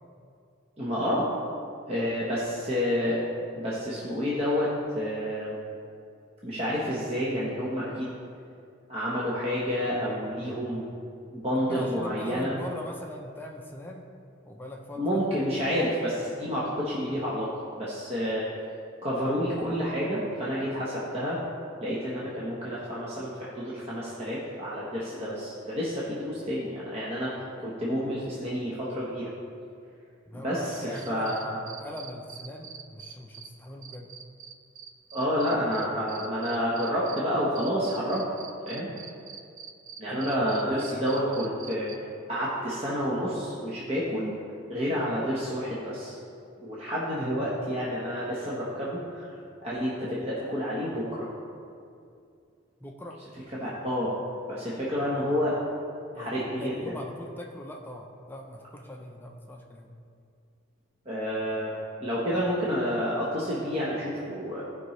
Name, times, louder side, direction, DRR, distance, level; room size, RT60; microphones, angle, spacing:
voice 1, 0.8-1.3 1.9-3.2 3.5-5.6 6.4-8.1 8.9-10.9 11.3-12.5 15.0-18.5 19.0-21.4 21.8-27.3 27.6-29.3 30.3-31.6 35.1-38.2 38.6-38.9 40.0-41.9 42.3-44.3 44.7-46.2 46.6-49.3 49.6-51.3 53.6-54.1 54.5-55.6 56.1-56.9 61.0-64.6, equal, 30° right, -8 dB, 1.1 m, -29 dB
voice 2, 11.5-14.1 14.4-15.2 30.3-34.1 40.1-41.2 52.8-53.2 56.1-59.9, left 1 dB, 10° left, 0 dB, 0.6 m, -41 dB
sound 1, 30.7-33.5 33.8-37.2 37.5-42.0, right 7 dB, 75° right, 0.6 m, -44 dB
14.5 x 5.3 x 3.2 m, 2.4 s
head